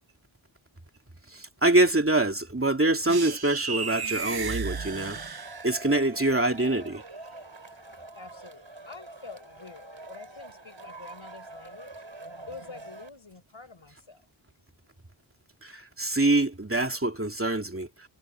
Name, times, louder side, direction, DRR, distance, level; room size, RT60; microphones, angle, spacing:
voice 1, 1.3-7.0 15.6-17.9, right 2 dB, 25° right, 2.7 m, -25 dB
sound 1, 3.1-6.0, right 5 dB, 50° right, 0.9 m, -34 dB
Male speech man speaking / Shout / Clapping, 4.7-13.1, right 2 dB, 70° right, 7.3 m, -45 dB
voice 2, 8.1-11.9 12.5-14.2, left 4 dB, 70° left, 7.3 m, -47 dB
wide cardioid pair, 50°, 49 cm